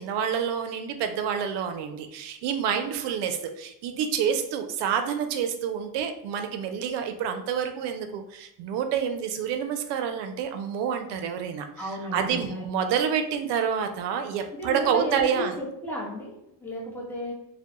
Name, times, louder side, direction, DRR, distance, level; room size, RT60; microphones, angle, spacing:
voice 1, 0.0-15.6, right 7 dB, 75° right, 6 dB, 0.5 m, -28 dB
voice 2, 11.8-12.6 14.6-17.3, left 1 dB, 5° left, -5 dB, 0.8 m, -34 dB
2.2 x 2.1 x 2.8 m, 0.79 s
cardioid pair, 115°, 42 cm